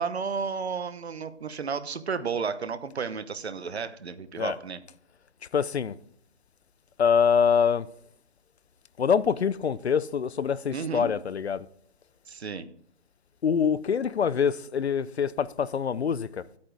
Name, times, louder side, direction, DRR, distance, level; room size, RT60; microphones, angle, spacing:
voice 1, 0.0-4.8 10.7-11.1 12.3-12.7, right 5 dB, 70° right, 1.0 m, -32 dB
voice 2, 5.5-6.0 7.0-7.9 9.0-11.7 13.4-16.5, left 7 dB, 70° left, 0.6 m, -25 dB
10.0 x 8.5 x 4.7 m
hypercardioid pair, 175°, 34 cm